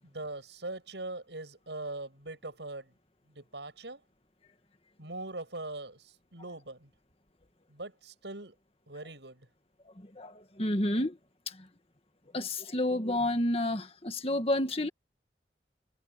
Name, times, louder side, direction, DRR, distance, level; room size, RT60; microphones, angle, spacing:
voice 1, 0.0-2.9 3.3-4.0 5.0-6.9 7.7-8.5 8.9-9.5, right 2 dB, 85° right, 7.9 m, -41 dB
voice 2, 10.0-11.2 11.5-11.7 12.3-14.9, left 1 dB, 35° left, 1.8 m, -30 dB
head